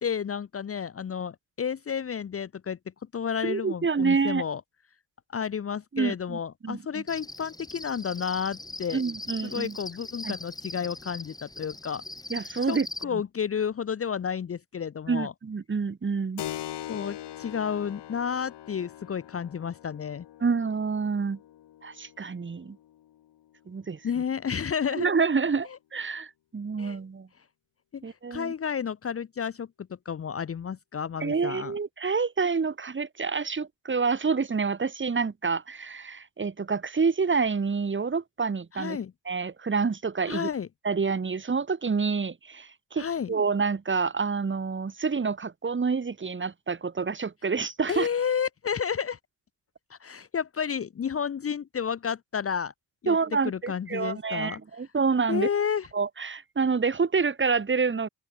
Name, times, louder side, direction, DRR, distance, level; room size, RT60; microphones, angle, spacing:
voice 1, 0.0-2.8 3.1-4.6 5.3-9.0 9.4-12.0 12.6-15.3 16.9-20.2 24.0-25.1 26.8-27.0 27.9-28.0 28.3-31.7 38.7-39.1 40.3-40.7 43.0-43.3 47.9-49.2 49.9-52.7 53.0-53.2 53.4-54.6 55.3-55.9, left 7 dB, 35° left, 1.0 m, -31 dB
voice 2, 3.4-4.4 5.9-7.0 8.9-9.8 10.2-10.3 12.3-12.9 13.1-13.2 15.1-16.4 20.4-21.4 21.8-22.8 23.7-24.0 24.9-27.3 28.0-28.5 31.2-39.0 39.3-40.5 40.8-48.1 53.1-55.5 55.9-58.1, right 5 dB, 30° right, 3.8 m, -28 dB
Cricket, 7.1-13.0, left 2 dB, 10° left, 2.6 m, -40 dB
Keyboard (musical), 16.4-24.6, left 12 dB, 75° left, 7.0 m, -43 dB
open air
cardioid pair, 120°, 41 cm